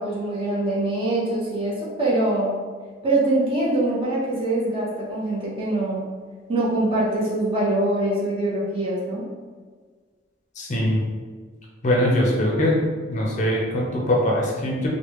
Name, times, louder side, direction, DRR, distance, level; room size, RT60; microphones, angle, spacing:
voice 1, 0.0-2.6 3.0-6.1 6.5-9.3, right 2 dB, 30° right, -6 dB, 0.8 m, -23 dB
voice 2, 10.6-11.0 11.8-12.8 13.1-14.9, left 1 dB, 40° left, -3 dB, 0.5 m, -22 dB
3.2 x 2.1 x 3.0 m, 1.5 s
head